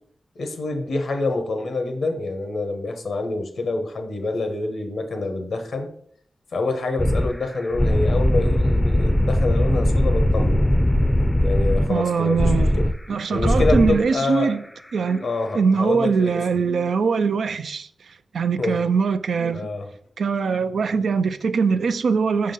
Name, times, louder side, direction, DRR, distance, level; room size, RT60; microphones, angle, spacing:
voice 1, 0.3-5.9 6.5-10.6 11.4-12.9 13.3-14.5 15.2-16.6 18.6-18.8 19.5-19.9, left 2 dB, 85° left, 1.0 m, -26 dB
sound 1, 7.0-7.3 7.6-11.9 12.3-13.0 13.4-14.0, left 1 dB, 15° left, 0.5 m, -19 dB
voice 2, 11.9-12.7 13.1-14.6 14.9-15.3 15.5-17.9 18.3-19.7 20.2-22.5, right 5 dB, 85° right, 0.4 m, -22 dB
5.6 x 3.7 x 5.4 m
cardioid pair, 45°, 0 cm